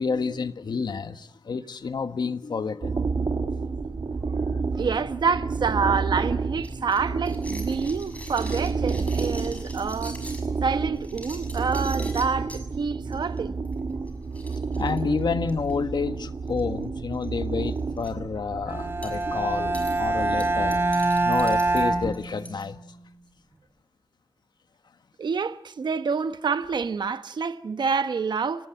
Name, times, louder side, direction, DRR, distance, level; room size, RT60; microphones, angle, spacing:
voice 1, 0.0-3.0 4.3-4.4 14.7-20.8 21.2-22.8, left 5 dB, 75° left, 1.4 m, -29 dB
sound 1, 2.8-22.1, right 4 dB, 65° right, 2.3 m, -30 dB
voice 2, 4.7-10.2 10.6-13.5 25.2-28.7, right 5 dB, 80° right, 1.1 m, -27 dB
sound 2, 6.6-10.5 11.0-12.6 13.1-13.4 13.6-13.8 14.1-14.2 14.3-15.7 16.5-16.8 17.1-17.3 17.7-18.1 19.0-19.2 19.7-19.9 20.4-22.6, left 1 dB, 20° left, 6.2 m, -43 dB
Bowed string instrument, 18.7-22.8, right 2 dB, 30° right, 3.1 m, -25 dB
29.5 x 18.5 x 8.2 m
wide cardioid pair, 110°, 7 cm